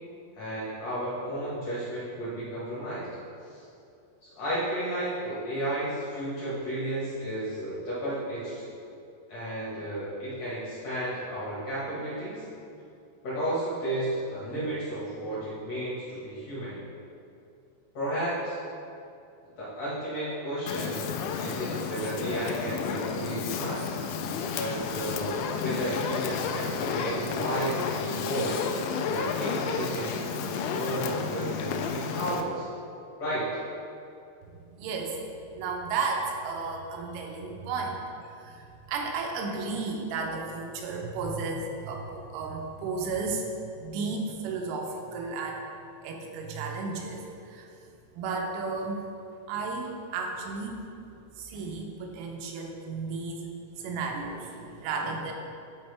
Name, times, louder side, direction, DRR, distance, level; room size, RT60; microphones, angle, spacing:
voice 1, 0.3-3.1 3.5-3.6 4.2-8.7 9.3-12.4 13.2-16.8 17.9-18.6 19.6-21.1 21.4-23.9 24.5-28.7 29.0-32.7 33.2-33.5, right 1 dB, 65° left, -9 dB, 1.6 m, -33 dB
Fire, 20.7-32.4, left 6 dB, 85° left, 2.6 m, -32 dB
voice 2, 34.8-35.2 35.5-43.5 43.8-45.6 46.0-47.7 48.1-49.1 49.5-50.8 51.4-55.3, right 4 dB, 85° right, 1 dB, 3.2 m, -33 dB
11.5 x 4.5 x 3.3 m, 2.6 s
omnidirectional pair, 5.5 m